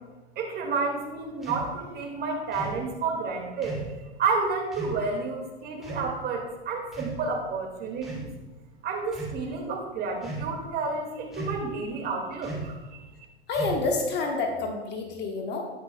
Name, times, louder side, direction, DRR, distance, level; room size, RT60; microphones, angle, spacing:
voice 1, 0.4-3.8 4.2-8.3 8.8-13.1, right 4 dB, 30° right, 2 dB, 1.9 m, -30 dB
sound 1, 1.4-1.7 2.5-2.8 3.6-3.9 4.7-5.0 5.8-6.1 6.9-7.5 8.0-8.3 9.0-9.4 10.2-10.6 11.3-11.7 12.4-12.8 13.5-14.0, right 2 dB, ahead, 2.6 m, -36 dB
voice 2, 13.5-15.6, left 3 dB, 30° left, 2 dB, 1.3 m, -28 dB
18.0 x 6.0 x 2.2 m, 1.2 s
figure-of-eight pair, 100°, 33 cm